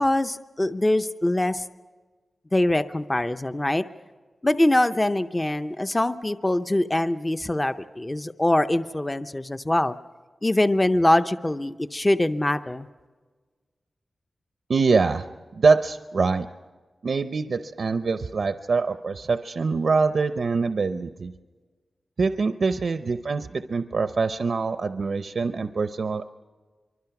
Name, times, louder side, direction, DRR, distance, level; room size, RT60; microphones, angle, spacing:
voice 1, 0.0-1.6 2.5-3.8 4.4-10.0 10.4-12.9, left 1 dB, 20° left, 10 dB, 0.6 m, -23 dB
voice 2, 14.7-15.3 15.5-16.5 17.0-21.3 22.2-26.3, right 4 dB, 60° right, 9 dB, 0.7 m, -24 dB
25.5 x 24.0 x 5.9 m, 1.4 s
wide cardioid pair, 130°, 0 cm